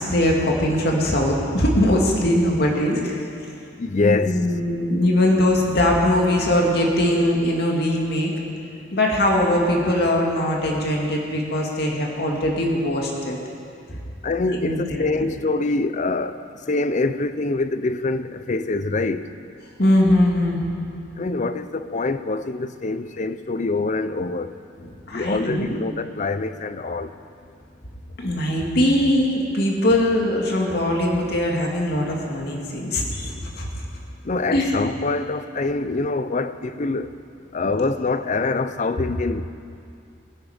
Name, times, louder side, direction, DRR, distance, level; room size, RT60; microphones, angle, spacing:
voice 1, 0.0-3.3 3.9-8.3 8.9-13.4 13.9-14.0 14.6-15.3 19.8-20.7 24.8-25.8 28.2-33.7 34.5-34.7, left 1 dB, 60° left, -1 dB, 2.3 m, -21 dB
voice 2, 3.8-4.5 8.8-8.9 14.2-19.3 21.1-24.6 25.1-27.2 34.2-37.2 37.5-39.4, left 3 dB, 40° left, 12 dB, 0.6 m, -25 dB
22.0 x 9.9 x 5.1 m, 2.5 s
head